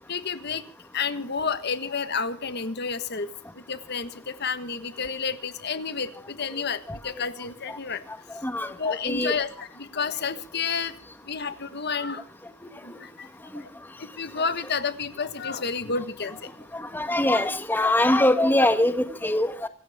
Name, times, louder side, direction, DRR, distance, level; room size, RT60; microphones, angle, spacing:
voice 1, 0.1-0.6 0.9-3.3 3.5-8.0 8.8-11.0 11.2-12.3 12.8-13.3 13.5-13.7 14.0-16.5, left 5 dB, 55° left, 11 dB, 1.5 m, -30 dB
voice 2, 8.4-9.3 16.7-19.7, left 1 dB, 10° left, 8 dB, 1.5 m, -23 dB
26.5 x 14.5 x 3.6 m, 0.41 s
head